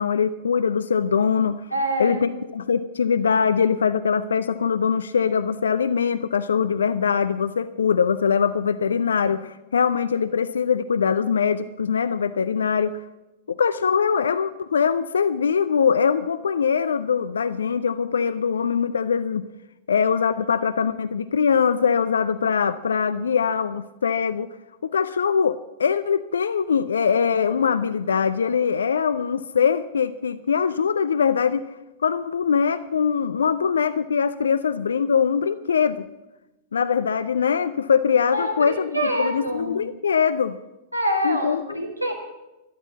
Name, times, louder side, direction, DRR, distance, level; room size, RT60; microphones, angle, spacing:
voice 1, 0.0-1.6 2.0-13.0 13.5-19.4 19.9-24.5 24.8-31.6 32.0-36.1 36.7-40.6 41.2-41.6, left 6 dB, 65° left, 13 dB, 0.5 m, -22 dB
voice 2, 1.7-2.2 38.3-39.8 40.9-42.1, right 1 dB, 85° right, 2 dB, 2.7 m, -26 dB
13.0 x 12.0 x 7.2 m, 1.0 s
figure-of-eight pair, 100°, 0 cm